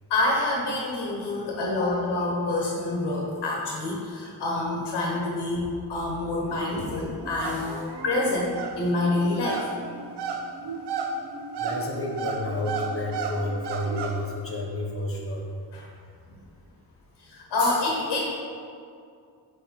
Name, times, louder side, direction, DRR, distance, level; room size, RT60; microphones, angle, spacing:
voice 1, 0.1-9.7 15.7-15.9 17.2-18.2, left 2 dB, 80° left, -2 dB, 1.1 m, -27 dB
sound 1, 6.5-14.2, right 4 dB, 75° right, 0.7 m, -34 dB
voice 2, 11.6-15.5, left 1 dB, 35° left, -1 dB, 1.1 m, -31 dB
4.8 x 4.7 x 4.4 m, 2.3 s
cardioid pair, 95°, 41 cm